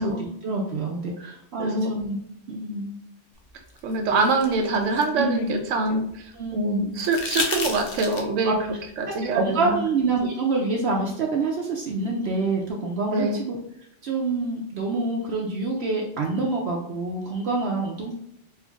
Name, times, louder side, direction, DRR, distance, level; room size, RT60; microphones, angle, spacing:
voice 1, 0.0-2.2 2.5-3.0 5.2-5.5 6.3-7.0 8.4-8.6 9.1-13.6 14.0-18.1, right 3 dB, 65° right, 0 dB, 0.8 m, -26 dB
voice 2, 1.2-2.0 3.8-9.8 13.1-13.4, right 3 dB, 90° right, 4 dB, 1.0 m, -25 dB
sound 1, 3.8-6.1 7.0-8.5 10.2-10.3, left 4 dB, 60° left, 0.7 m, -32 dB
4.3 x 2.5 x 2.4 m, 0.74 s
omnidirectional pair, 1.2 m